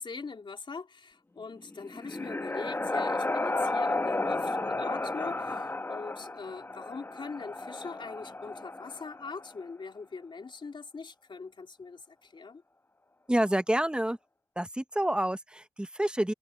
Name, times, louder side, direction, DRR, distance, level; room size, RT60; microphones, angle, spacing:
voice 1, 0.0-12.6, left 4 dB, 50° left, 3.1 m, -42 dB
sound 1, 1.6-9.5, left 2 dB, 20° left, 1.0 m, -33 dB
voice 2, 13.3-14.2 14.6-16.3, right 1 dB, 10° right, 0.8 m, -28 dB
wide cardioid pair, 110°, 11 cm